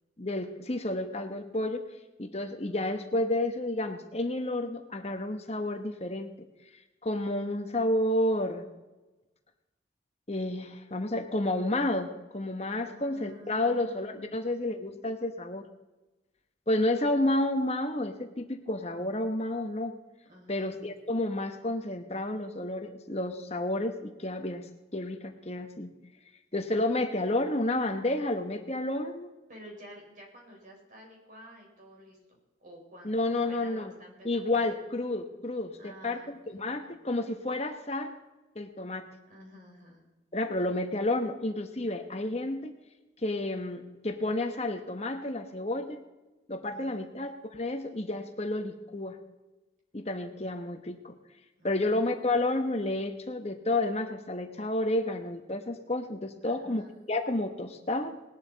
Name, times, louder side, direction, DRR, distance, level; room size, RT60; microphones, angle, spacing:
voice 1, 0.2-1.8 2.2-6.3 7.0-8.7 10.3-15.7 16.7-19.9 20.5-24.7 24.9-25.9 26.5-29.3 33.0-33.9 34.2-38.2 38.5-39.0 40.3-42.7 43.2-46.0 46.5-49.2 49.9-51.1 51.6-58.2, left 1 dB, 35° left, 6 dB, 1.2 m, -30 dB
voice 2, 12.8-14.5 20.2-20.7 29.5-34.8 35.8-37.0 39.3-40.0 46.7-47.2 51.6-52.2 56.4-56.9, equal, 45° right, -1 dB, 4.6 m, -51 dB
19.5 x 11.5 x 4.1 m, 1.1 s
head